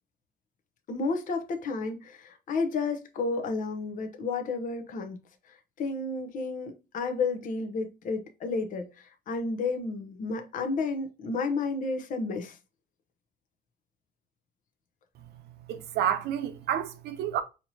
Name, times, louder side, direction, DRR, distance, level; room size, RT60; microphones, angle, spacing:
voice 1, 0.9-5.2 5.5-12.6, left 3 dB, 50° left, 0.7 m, -31 dB
voice 2, 15.7-17.4, right 10 dB, 75° right, 0.7 m, -29 dB
4.5 x 2.9 x 2.7 m
cardioid pair, 110°, 17 cm